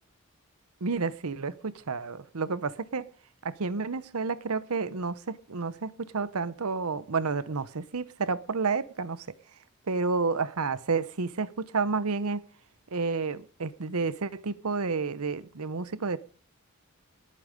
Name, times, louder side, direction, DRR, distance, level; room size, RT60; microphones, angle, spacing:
voice 1, 0.8-3.1 3.4-9.3 9.9-12.4 12.9-16.2, right 4 dB, 85° right, 0.8 m, -30 dB
19.5 x 8.6 x 5.2 m
head